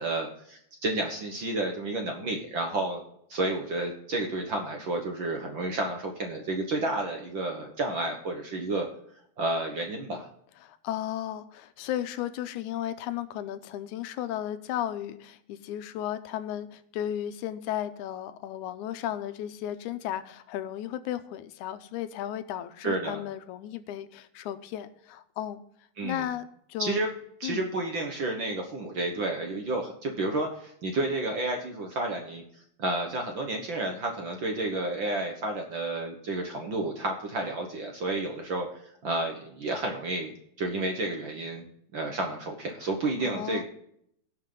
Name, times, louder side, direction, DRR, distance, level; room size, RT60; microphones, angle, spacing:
voice 1, 0.0-3.0 3.3-8.9 9.4-10.3 22.8-23.2 26.0-26.3 26.8-27.1 27.4-32.4 32.8-38.7 39.0-41.6 41.9-43.6, right 2 dB, 55° right, 2 dB, 1.5 m, -31 dB
voice 2, 10.6-25.6 26.0-27.1 27.4-27.6 43.2-43.6, left 11 dB, 85° left, 11 dB, 2.1 m, -34 dB
17.0 x 5.7 x 3.8 m, 0.70 s
omnidirectional pair, 3.5 m